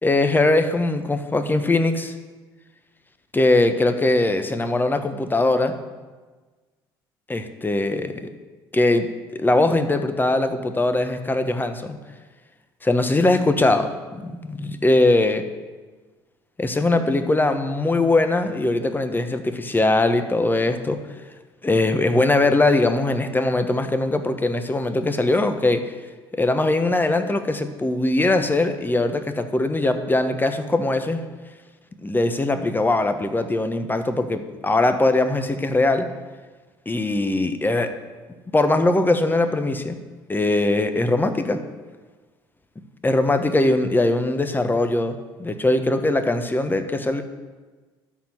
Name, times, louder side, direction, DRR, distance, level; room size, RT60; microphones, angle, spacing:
voice 1, 0.0-2.1 3.3-5.8 7.3-8.3 8.7-9.1 9.3-12.0 12.8-15.4 16.6-21.0 21.6-25.8 26.3-31.2 32.0-36.1 36.9-37.9 38.5-40.0 40.3-41.6 43.0-47.2, left 2 dB, 15° left, 9 dB, 1.2 m, -21 dB
12.5 x 4.5 x 7.8 m, 1.3 s
hypercardioid pair, 60°, 12 cm